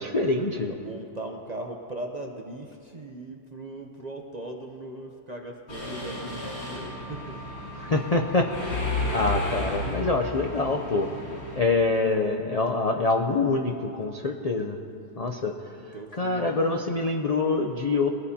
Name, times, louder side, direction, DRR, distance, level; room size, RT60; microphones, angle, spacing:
voice 1, 0.0-0.7 7.8-11.1 11.6-14.8 15.2-15.5 16.1-18.1, left 3 dB, 55° left, 3 dB, 0.4 m, -25 dB
voice 2, 0.7-7.4 15.9-16.7 17.2-17.4, right 1 dB, 40° right, 2 dB, 0.6 m, -39 dB
Mechanisms, 5.7-11.6, left 2 dB, 75° left, 2.8 m, -33 dB
21.5 x 14.0 x 2.8 m, 2.6 s
omnidirectional pair, 1.6 m